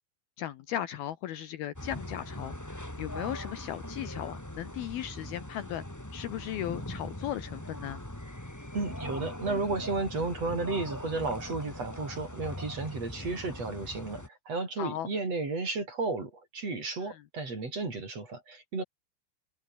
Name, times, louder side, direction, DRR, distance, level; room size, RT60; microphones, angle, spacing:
voice 1, 0.4-5.8 6.1-8.0 14.8-15.1 17.0-17.2, left 12 dB, 70° left, 2.7 m, -37 dB
sound 1, 1.7-14.3, left 1 dB, 5° left, 1.7 m, -41 dB
voice 2, 8.7-18.8, right 3 dB, 35° right, 6.6 m, -33 dB
omnidirectional pair, 5.1 m